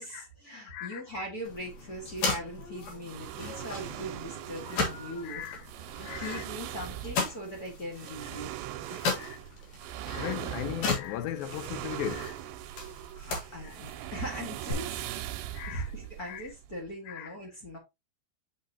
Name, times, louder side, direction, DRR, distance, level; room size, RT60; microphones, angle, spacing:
voice 1, 0.0-5.5 6.2-8.5 8.9-9.1 13.1-15.1 15.7-17.8, equal, 40° left, 1.3 m, -40 dB
voice 2, 0.7-1.0 5.2-5.6 6.0-6.5 8.3-8.4 9.2-9.4 10.1-12.4 13.6-13.8 15.5-15.9 16.2-16.5 17.1-17.3, left 11 dB, 85° left, 2.4 m, -37 dB
sound 1, 1.4-14.7, left 4 dB, 60° left, 2.7 m, -37 dB
sound 2, 3.0-16.9, right 13 dB, 85° right, 2.3 m, -40 dB
6.2 x 6.0 x 2.8 m
omnidirectional pair, 4.3 m